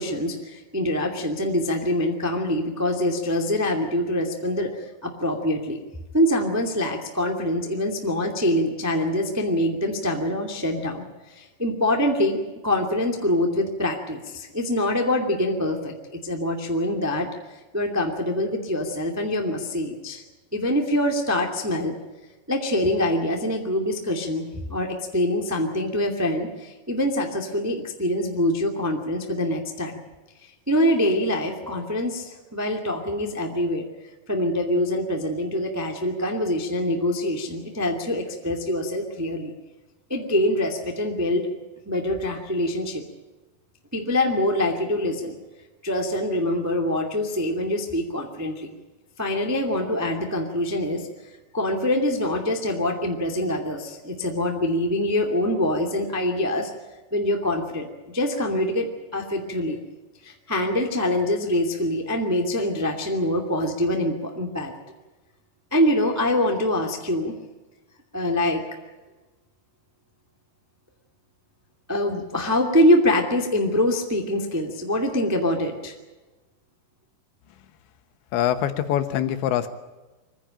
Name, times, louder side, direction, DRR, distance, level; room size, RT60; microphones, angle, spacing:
voice 1, 0.0-4.8 5.0-5.8 6.1-17.3 17.7-20.2 20.5-21.9 22.5-30.0 30.7-33.9 34.3-39.5 40.1-41.5 41.8-43.0 43.9-45.3 45.8-48.7 49.2-51.1 51.5-56.7 57.1-59.8 60.2-64.7 65.7-67.3 68.1-68.6 71.9-75.9, left 1 dB, 15° right, 2 dB, 0.6 m, -24 dB
voice 2, 78.3-79.7, left 11 dB, 90° left, 9 dB, 3.5 m, -24 dB
23.5 x 15.5 x 8.9 m, 1.2 s
omnidirectional pair, 5.0 m